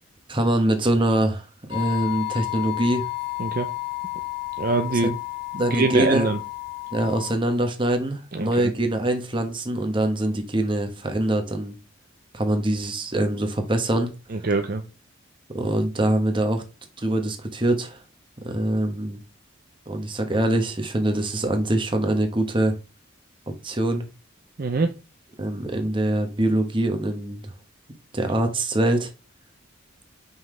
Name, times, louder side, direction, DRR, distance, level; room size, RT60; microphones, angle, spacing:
voice 1, 0.3-3.0 5.6-6.3 6.9-11.8 12.3-14.1 15.5-16.6 17.0-18.0 18.4-19.2 19.9-22.8 23.5-24.1 25.4-27.5 28.1-29.1, right 1 dB, 25° right, 1.2 m, -24 dB
sound 1, 1.7-7.3, left 23 dB, 65° left, 1.9 m, -32 dB
voice 2, 3.4-3.7 4.6-5.2 5.5-6.4 8.3-8.7 14.3-14.8 24.6-24.9, right 3 dB, 45° right, 0.6 m, -24 dB
5.7 x 5.5 x 3.2 m
head